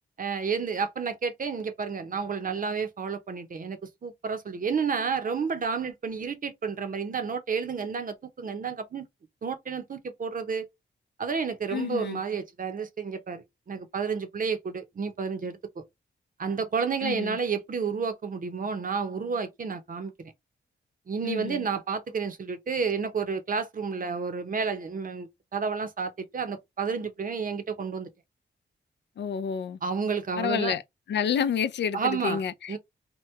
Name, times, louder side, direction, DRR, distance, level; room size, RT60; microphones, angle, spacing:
voice 1, 0.2-9.0 9.4-10.7 11.2-15.8 16.4-20.3 21.1-28.1 29.8-30.8 31.9-32.4 32.7-32.8, right 5 dB, 50° right, 0.7 m, -31 dB
voice 2, 11.7-12.2 17.0-17.4 21.2-21.7 29.2-29.8 30.4-30.8 31.1-32.8, left 7 dB, 70° left, 0.4 m, -29 dB
2.9 x 2.1 x 3.2 m
wide cardioid pair, 105°, 18 cm